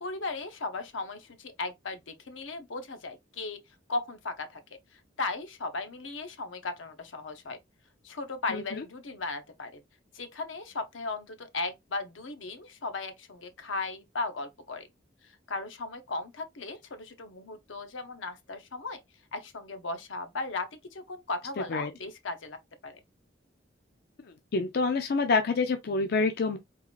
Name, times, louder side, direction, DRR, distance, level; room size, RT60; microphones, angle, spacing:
voice 1, 0.0-3.6 3.9-4.6 4.9-7.6 8.0-9.8 10.1-14.9 15.2-19.0 19.3-23.0, left 3 dB, 85° left, 0.8 m, -36 dB
voice 2, 24.5-26.6, left 4 dB, 55° left, 0.4 m, -27 dB
3.7 x 2.4 x 3.1 m
head